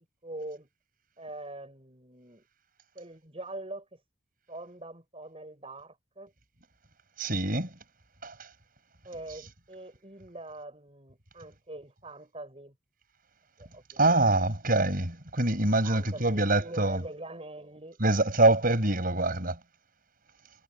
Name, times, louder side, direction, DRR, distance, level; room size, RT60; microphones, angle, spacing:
voice 1, 0.2-0.7 1.2-2.4 2.9-4.0 4.5-6.3 9.0-12.7 13.6-14.1 14.4-14.5 15.8-18.0, right 2 dB, 30° right, 6.5 m, -43 dB
voice 2, 7.2-7.7 8.2-8.5 14.0-17.0 18.0-19.6, right 2 dB, 45° right, 6.5 m, -25 dB
head